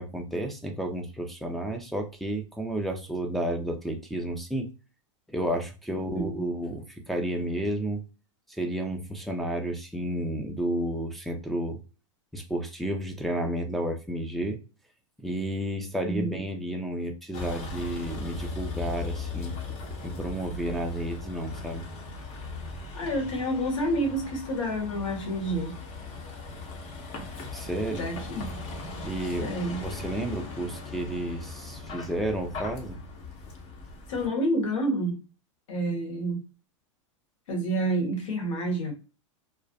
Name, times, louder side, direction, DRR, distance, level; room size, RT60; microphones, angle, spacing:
voice 1, 0.0-4.7 5.3-8.0 8.5-11.8 12.3-14.6 15.2-19.6 20.0-21.9 27.5-28.1 29.0-33.0, right 1 dB, ahead, 0.3 m, -31 dB
voice 2, 5.9-6.4 16.0-16.4 22.9-25.8 27.9-28.5 29.2-29.8 34.1-35.2 35.7-36.4 37.5-38.9, right 1 dB, 70° left, 1.1 m, -29 dB
Vehicle, 17.3-34.3, left 3 dB, 40° left, 0.7 m, -38 dB
2.4 x 2.0 x 2.6 m
hypercardioid pair, 120°, 16 cm